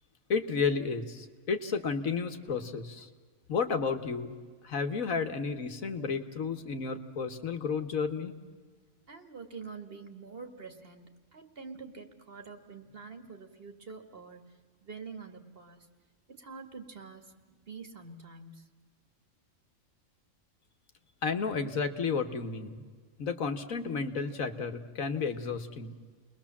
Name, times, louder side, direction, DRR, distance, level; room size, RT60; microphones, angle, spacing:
voice 1, 0.3-3.1 3.5-4.3 4.6-8.3 21.2-22.8 23.2-26.0, left 5 dB, 85° left, 7 dB, 1.9 m, -32 dB
voice 2, 9.1-14.5 14.8-15.9 16.3-18.7, right 4 dB, 45° right, 6 dB, 1.9 m, -46 dB
30.0 x 21.0 x 7.4 m, 1.5 s
omnidirectional pair, 1.4 m